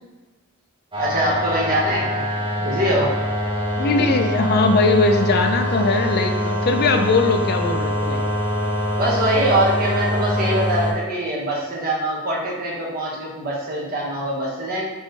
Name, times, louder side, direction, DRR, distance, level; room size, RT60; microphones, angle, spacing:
sound 1, 0.9-10.9, equal, 25° right, 1.0 m, -24 dB
voice 1, 0.9-2.3 2.6-3.1 9.0-14.9, right 1 dB, 45° right, -4 dB, 1.1 m, -23 dB
voice 2, 3.8-8.2, left 3 dB, 50° left, 5 dB, 0.5 m, -20 dB
3.6 x 3.1 x 4.0 m, 1.2 s
head